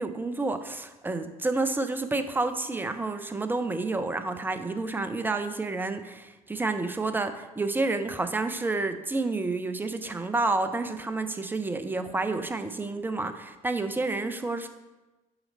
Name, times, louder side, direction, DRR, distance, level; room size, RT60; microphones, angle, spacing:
voice 1, 0.0-14.7, right 3 dB, 10° right, 9 dB, 0.5 m, -29 dB
5.9 x 5.1 x 3.9 m, 1.1 s
figure-of-eight pair, 55°, 21 cm